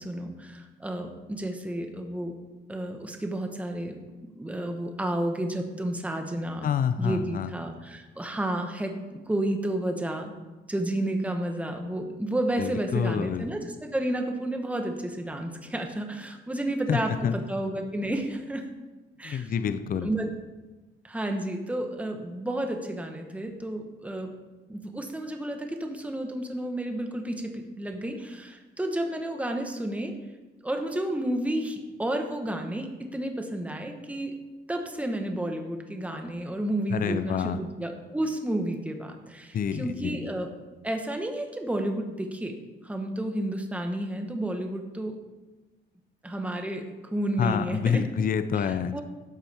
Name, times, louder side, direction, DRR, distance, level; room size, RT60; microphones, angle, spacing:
voice 1, 0.0-2.3 2.7-4.0 4.3-6.7 7.0-10.3 10.7-18.6 19.2-19.5 20.0-20.3 21.0-24.3 24.7-30.1 30.6-34.3 34.7-40.5 40.8-42.5 42.8-45.2 46.2-48.0 48.6-49.0, right 1 dB, 5° right, 4 dB, 1.2 m, -31 dB
voice 2, 6.6-7.5 12.6-13.5 16.9-17.3 19.2-20.1 36.9-37.6 39.5-40.2 47.4-49.0, left 7 dB, 45° left, 11 dB, 0.5 m, -27 dB
12.5 x 7.4 x 3.5 m, 1.2 s
cardioid pair, 90°, 20 cm